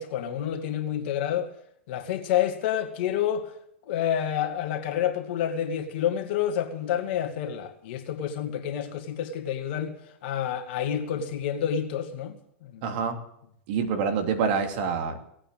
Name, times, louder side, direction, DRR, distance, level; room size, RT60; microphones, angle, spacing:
voice 1, 0.0-1.5 1.9-3.5 3.9-10.0 10.2-12.8, left 9 dB, 55° left, 2.3 m, -29 dB
voice 2, 12.8-13.2 13.7-15.2, right 6 dB, 55° right, 2.8 m, -26 dB
18.0 x 8.8 x 9.0 m
hypercardioid pair, 115°, 7 cm